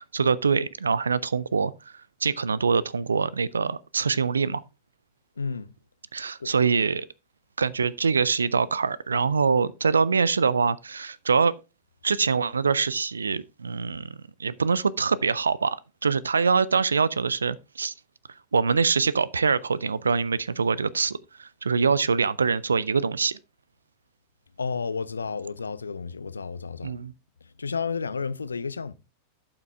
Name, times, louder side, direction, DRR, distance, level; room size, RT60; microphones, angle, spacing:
voice 1, 0.0-1.7 2.2-4.6 6.1-7.1 7.6-11.6 12.0-15.8 16.0-17.9 18.5-23.4 26.8-27.1, right 5 dB, 75° right, 0.4 m, -24 dB
voice 2, 5.4-5.7 6.4-6.5 24.6-27.0 27.6-28.9, left 5 dB, 75° left, 0.5 m, -31 dB
11.5 x 5.9 x 3.4 m
figure-of-eight pair, 90°, 0 cm